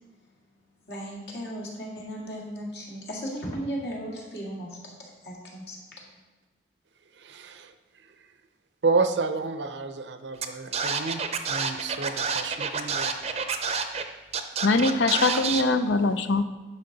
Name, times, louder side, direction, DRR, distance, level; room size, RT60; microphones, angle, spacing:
voice 1, 0.9-4.9 5.2-5.8, equal, 70° left, -3 dB, 2.0 m, -36 dB
voice 2, 7.2-7.7 8.8-11.2 11.5-13.3, right 4 dB, 75° right, 9 dB, 0.6 m, -29 dB
Scratching (performance technique), 10.4-10.5 10.7-14.0 14.3-15.6, right 5 dB, 35° right, 0.5 m, -28 dB
voice 3, 14.6-16.4, left 3 dB, 85° left, 11 dB, 0.5 m, -22 dB
10.5 x 5.7 x 4.0 m, 1.2 s
head